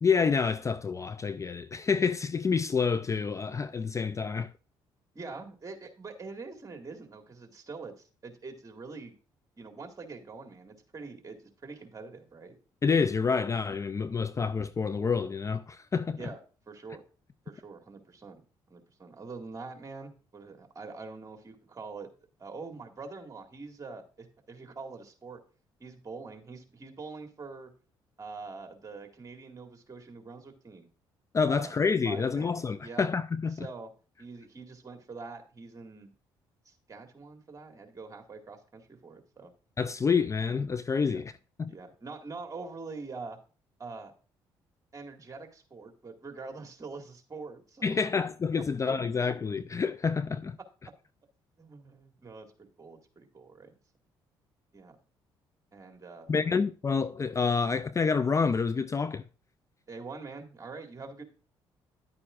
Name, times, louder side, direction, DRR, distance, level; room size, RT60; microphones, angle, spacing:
voice 1, 0.0-4.5 12.8-16.2 31.3-33.7 39.8-41.3 41.6-41.7 47.8-50.6 56.3-59.2, left 5 dB, 30° left, 0.4 m, -28 dB
voice 2, 5.1-9.1 9.6-12.5 16.2-16.4 16.7-17.0 17.5-18.4 18.7-22.1 22.4-25.4 25.8-27.7 28.2-30.9 31.5-31.7 32.0-33.1 33.5-33.9 34.2-36.1 36.7-39.5 41.1-41.2 41.7-43.4 43.8-44.1 44.9-48.1 48.5-48.9 51.6-53.8 54.7-55.0 55.7-56.6 59.9-61.2, right 4 dB, 30° right, 2.0 m, -44 dB
10.5 x 8.5 x 2.5 m
supercardioid pair, 60°, 11 cm